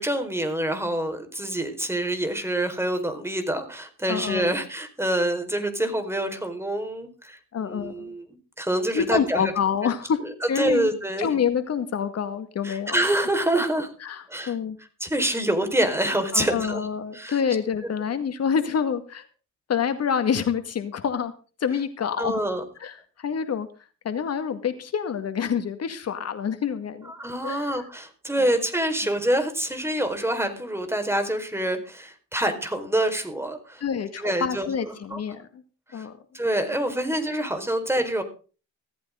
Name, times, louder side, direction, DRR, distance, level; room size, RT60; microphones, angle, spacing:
voice 1, 0.0-8.3 8.6-9.4 10.6-11.3 12.6-13.9 14.3-14.5 15.0-16.9 17.1-17.4 22.2-22.6 27.0-33.8 34.2-35.2 35.9-36.1 36.3-38.2, right 1 dB, 10° right, 7 dB, 4.7 m, -26 dB
voice 2, 4.1-4.5 7.5-8.1 8.9-10.2 10.5-10.9 11.2-13.0 13.8-14.8 16.3-19.2 19.7-21.3 21.6-22.4 22.8-23.7 24.0-27.1 27.4-27.7 28.4-28.5 29.0-29.1 33.8-35.6 35.9-36.1, left 7 dB, 55° left, 9 dB, 2.0 m, -27 dB
17.0 x 15.0 x 3.8 m, 0.36 s
cardioid pair, 90°, 30 cm